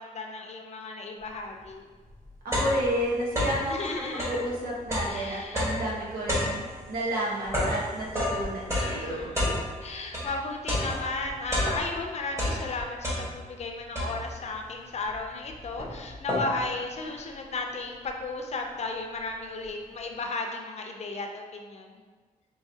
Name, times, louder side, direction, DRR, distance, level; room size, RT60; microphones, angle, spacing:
voice 1, 0.0-1.9 3.7-4.3 5.0-5.6 8.7-9.5 9.8-22.0, left 3 dB, 45° left, 3 dB, 0.5 m, -35 dB
sound 1, 1.6-1.7 2.1-3.7 4.1-10.3 10.7-12.0 12.3-13.6 14.0-14.5 15.1-15.2 15.5-16.7, left 1 dB, 20° right, 1.1 m, -30 dB
voice 2, 2.4-3.8 4.1-9.3, right 1 dB, 85° right, -4 dB, 1.0 m, -31 dB
4.8 x 2.8 x 2.7 m, 1.4 s
wide cardioid pair, 150°, 15 cm